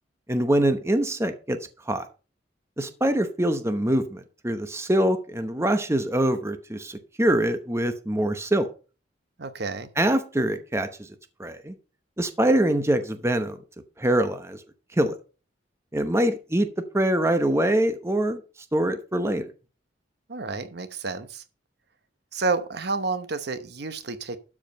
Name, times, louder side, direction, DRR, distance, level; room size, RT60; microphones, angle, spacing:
voice 1, 0.3-1.6 1.9-2.0 2.8-8.7 10.0-10.9 11.4-11.7 12.2-13.6 14.0-14.6 15.0-15.1 15.9-16.7 16.9-18.4 18.7-19.5, right 1 dB, 15° right, 8 dB, 0.9 m, -24 dB
voice 2, 9.4-9.9 20.3-21.4 22.3-24.4, right 3 dB, 60° right, 11 dB, 0.9 m, -30 dB
12.5 x 4.9 x 5.3 m, 0.34 s
head